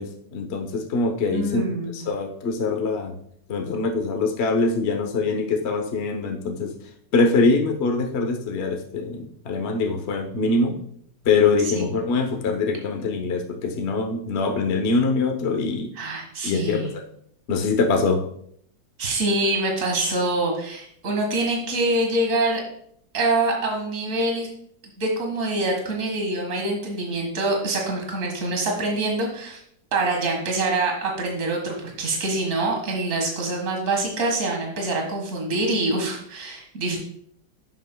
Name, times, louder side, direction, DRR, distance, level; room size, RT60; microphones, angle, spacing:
voice 1, 0.0-1.6 1.9-3.1 3.5-6.7 7.1-10.8 11.2-15.9 16.4-16.9 17.5-18.2, left 3 dB, 45° left, 4 dB, 0.9 m, -23 dB
voice 2, 1.3-1.9 11.6-11.9 16.0-16.9 19.0-22.6 23.1-24.5 25.0-29.6 29.9-37.0, right 2 dB, 45° right, 1 dB, 2.0 m, -25 dB
10.0 x 7.8 x 2.2 m, 0.67 s
omnidirectional pair, 2.0 m